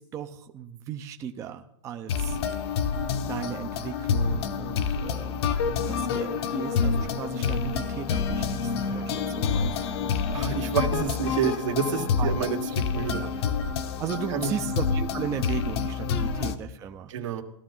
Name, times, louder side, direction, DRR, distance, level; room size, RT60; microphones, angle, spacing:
voice 1, 0.0-2.4 3.3-5.5 5.9-9.9 12.2-12.3 13.2-13.3 14.0-17.1, right 8 dB, 20° right, 5 dB, 0.6 m, -36 dB
sound 1, 2.1-16.6, left 6 dB, 55° left, 1.1 m, -28 dB
voice 2, 10.3-12.6 12.9-13.2 14.3-14.5 16.1-16.2 17.1-17.4, right 9 dB, 80° right, 2 dB, 2.2 m, -28 dB
17.5 x 12.5 x 3.8 m, 0.74 s
supercardioid pair, 160°, 16 cm